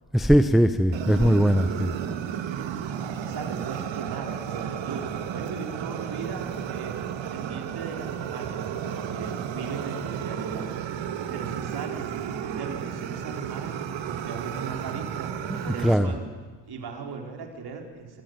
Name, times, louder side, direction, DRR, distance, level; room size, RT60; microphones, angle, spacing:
voice 1, 0.1-1.9 15.6-16.2, equal, ahead, 11 dB, 0.8 m, -20 dB
Fire, 0.9-15.9, right 8 dB, 70° right, 1.9 m, -33 dB
voice 2, 3.3-6.9 7.3-10.7 11.3-15.3 15.6-16.4 16.7-18.2, right 4 dB, 50° right, 2 dB, 4.5 m, -38 dB
25.5 x 14.5 x 9.6 m, 1.4 s
cardioid pair, 80°, 47 cm